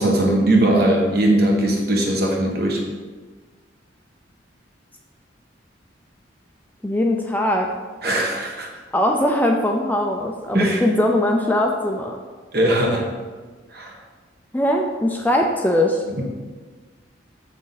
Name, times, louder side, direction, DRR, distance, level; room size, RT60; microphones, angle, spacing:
voice 1, 0.0-2.8 8.0-8.7 10.5-10.8 12.5-13.1 13.7-14.0 16.2-16.3, right 1 dB, 55° right, 0 dB, 1.4 m, -19 dB
voice 2, 6.8-7.7 8.9-12.2 14.5-16.0, left 1 dB, 10° left, 1 dB, 0.5 m, -20 dB
7.5 x 6.2 x 4.1 m, 1.4 s
head